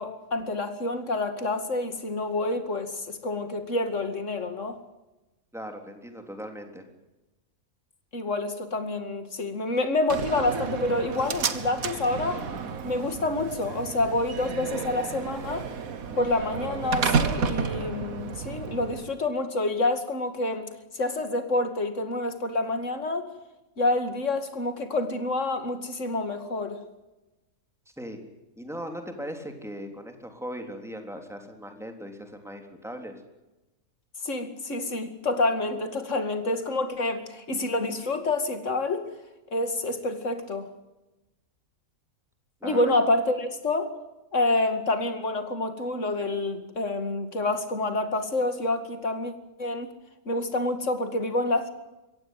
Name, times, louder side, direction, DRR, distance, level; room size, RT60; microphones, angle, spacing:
voice 1, 0.0-4.8 8.1-12.5 12.8-15.7 16.1-23.3 23.8-26.8 34.2-39.1 39.5-40.7 42.6-43.9 44.3-49.3 49.6-49.9 50.3-51.7, left 2 dB, 55° left, 8 dB, 2.6 m, -28 dB
voice 2, 5.5-6.8 28.0-28.2 28.6-33.2 42.6-42.8, equal, ahead, 4 dB, 3.4 m, -39 dB
Slam, 10.1-19.1, right 6 dB, 75° right, 1.8 m, -31 dB
23.5 x 17.0 x 9.2 m, 1.0 s
omnidirectional pair, 1.5 m